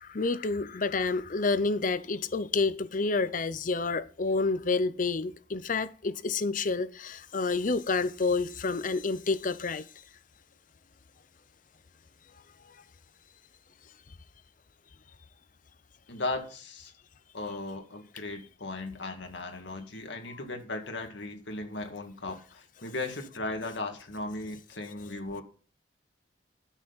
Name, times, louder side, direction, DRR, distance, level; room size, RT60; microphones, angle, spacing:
voice 1, 0.0-9.8, left 3 dB, 45° left, 0.6 m, -29 dB
voice 2, 16.1-16.9 17.3-25.4, left 2 dB, 75° left, 2.1 m, -37 dB
12.5 x 6.3 x 4.1 m
head